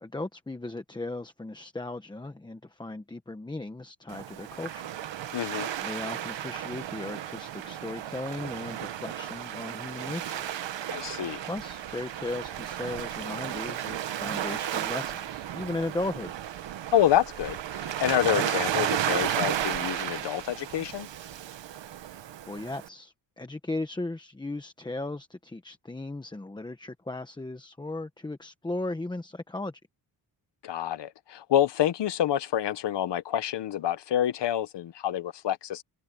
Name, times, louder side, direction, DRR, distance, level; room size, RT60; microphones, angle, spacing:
voice 1, 0.0-4.9 5.8-10.5 11.4-16.3 22.5-29.8, left 2 dB, 10° left, 1.0 m, -36 dB
Waves surf, 4.1-22.9, right 11 dB, 85° right, 1.4 m, -33 dB
voice 2, 5.3-5.7 10.9-11.4 16.9-21.1 30.6-35.8, left 11 dB, 70° left, 1.2 m, -27 dB
wide cardioid pair, 160°, 43 cm